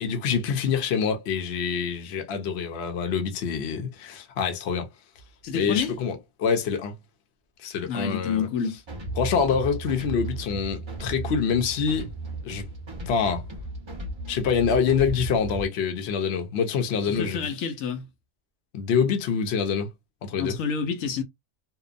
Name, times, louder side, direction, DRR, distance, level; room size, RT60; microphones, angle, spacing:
voice 1, 0.0-4.9 5.5-7.0 7.6-8.5 9.2-12.1 12.4-12.7 13.1-13.4 14.3-17.5 18.7-19.9 20.2-20.6, left 6 dB, 60° left, 0.9 m, -26 dB
voice 2, 5.4-6.0 7.9-8.8 17.0-18.0 20.3-21.2, left 6 dB, 85° left, 1.1 m, -28 dB
sound 1, 8.9-15.7, right 2 dB, 30° right, 0.6 m, -35 dB
2.8 x 2.1 x 2.4 m
omnidirectional pair, 1.4 m